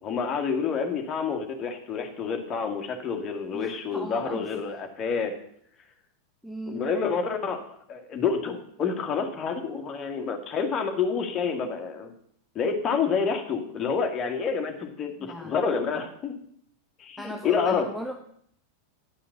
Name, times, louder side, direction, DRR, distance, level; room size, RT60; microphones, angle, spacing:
voice 1, 0.0-5.3 6.7-12.1 12.6-16.4 17.0-17.9, left 5 dB, 25° left, 4 dB, 1.8 m, -28 dB
voice 2, 3.5-4.5 6.4-6.9 15.2-15.6 17.2-18.1, equal, ahead, 2 dB, 0.9 m, -38 dB
9.9 x 5.7 x 6.9 m, 0.66 s
figure-of-eight pair, 90°, 0 cm